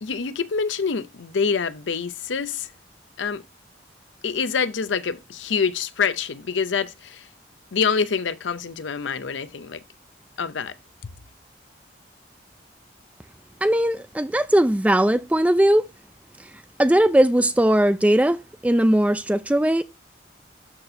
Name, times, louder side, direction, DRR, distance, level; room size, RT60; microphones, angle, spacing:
voice 1, 0.0-2.7 3.2-3.4 4.2-7.3 7.7-9.8 10.4-10.7 11.0-11.1, left 5 dB, 90° left, 0.6 m, -26 dB
voice 2, 13.6-15.8 16.8-19.8, right 1 dB, 10° right, 0.4 m, -19 dB
12.5 x 4.2 x 2.7 m
head